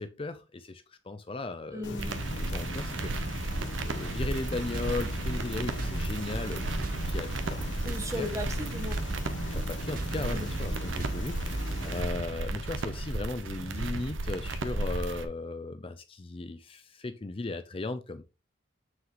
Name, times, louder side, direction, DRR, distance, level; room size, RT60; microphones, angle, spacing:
voice 1, 0.0-2.1 2.4-3.6 3.8-7.7 8.2-8.3 9.4-18.2, left 2 dB, 30° left, 0.5 m, -37 dB
voice 2, 1.7-2.2 7.8-9.0 10.3-10.5, left 1 dB, 15° right, 1.2 m, -36 dB
sound 1, 1.8-12.0, left 1 dB, 75° left, 1.4 m, -38 dB
sound 2, 2.0-15.2, right 2 dB, 85° right, 1.0 m, -34 dB
sound 3, 4.2-12.4, right 2 dB, 45° right, 0.6 m, -40 dB
7.2 x 6.4 x 3.1 m
head